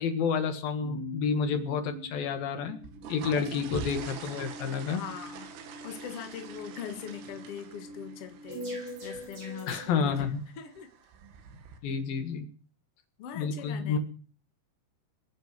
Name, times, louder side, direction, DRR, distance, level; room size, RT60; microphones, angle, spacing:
voice 1, 0.0-2.8 3.1-5.0 9.7-10.4 11.8-12.5 13.3-14.0, left 6 dB, 55° left, 8 dB, 3.1 m, -30 dB
sound 1, 0.8-9.9, equal, 65° right, 9.9 m, -44 dB
sound 2, 2.7-11.8, right 7 dB, 90° right, 4.7 m, -45 dB
voice 2, 3.2-3.7 4.9-5.5 5.8-10.2 10.6-10.9 11.8-11.9 13.2-14.0, left 8 dB, 85° left, 7 dB, 1.3 m, -42 dB
23.5 x 9.2 x 6.3 m, 0.42 s
omnidirectional pair, 5.7 m